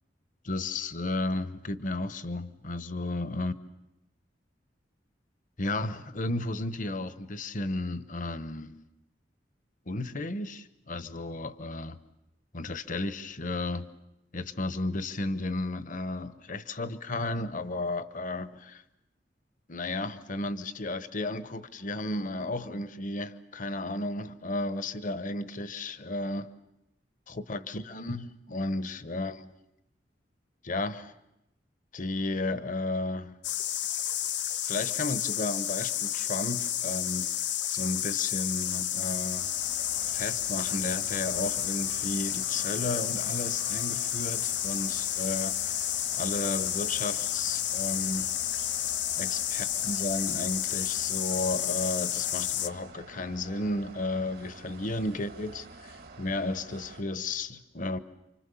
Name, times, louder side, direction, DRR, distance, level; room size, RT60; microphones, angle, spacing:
voice 1, 0.4-3.5 5.6-8.8 9.9-12.0 12.5-13.9 14.3-18.8 19.7-26.5 27.3-29.5 30.6-31.1 31.9-33.4 34.6-37.3 37.7-39.5 40.1-45.9 46.1-48.3 49.2-58.0, left 2 dB, 45° left, 1.0 m, -33 dB
sound 1, 33.4-52.7, left 11 dB, 75° left, 0.9 m, -31 dB
sound 2, 39.4-57.0, right 3 dB, 60° right, 1.6 m, -48 dB
29.0 x 25.5 x 7.0 m
head